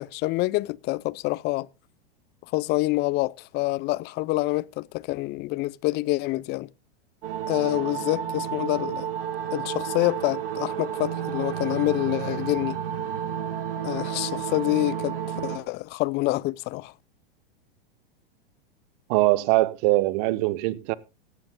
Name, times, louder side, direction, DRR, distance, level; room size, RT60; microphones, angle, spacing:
voice 1, 0.0-1.7 2.5-6.7 7.5-9.1 9.5-12.8 13.8-15.2 15.4-16.9, left 20 dB, 35° left, 0.5 m, -27 dB
sound 1, 7.2-15.6, right 9 dB, 70° right, 2.7 m, -31 dB
voice 2, 19.1-21.0, right 19 dB, 50° right, 1.0 m, -22 dB
16.5 x 14.5 x 2.2 m
hypercardioid pair, 105°, 30 cm